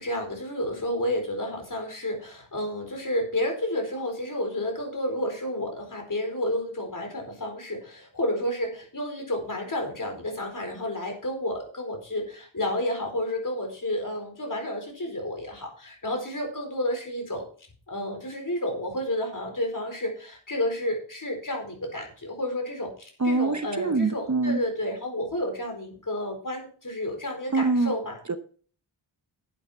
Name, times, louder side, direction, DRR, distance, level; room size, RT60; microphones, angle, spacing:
voice 1, 0.0-17.4 17.9-22.9 23.2-28.2, left 1 dB, 40° left, 3 dB, 4.5 m, -31 dB
voice 2, 23.2-24.6 27.5-27.9 28.3-28.4, right 3 dB, 35° right, 10 dB, 0.9 m, -24 dB
11.5 x 8.6 x 4.4 m, 0.41 s
wide cardioid pair, 105°, 47 cm